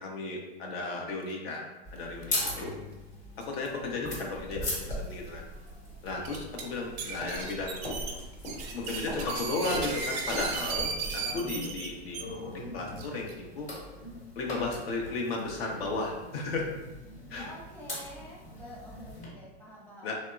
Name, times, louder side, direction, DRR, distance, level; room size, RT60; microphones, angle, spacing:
voice 1, 0.0-2.7 3.4-5.4 6.0-8.0 8.7-12.2 12.5-13.7 14.4-16.7 17.3-17.5 20.0-20.2, left 3 dB, 65° left, 0 dB, 0.6 m, -34 dB
sound 1, 1.8-19.2, left 1 dB, 20° left, 0.9 m, -42 dB
sound 2, 2.2-2.5 2.7-2.8 3.4-3.7 4.5-4.6 5.1-5.2 6.1-6.6 7.0-12.2 13.0-13.3, right 5 dB, 40° right, 0.4 m, -36 dB
sound 3, 4.4-11.1, equal, 85° left, 1.1 m, -40 dB
voice 2, 17.4-20.1, equal, 5° left, -6 dB, 0.6 m, -48 dB
2.9 x 2.1 x 2.3 m, 1.1 s
hypercardioid pair, 100°, 34 cm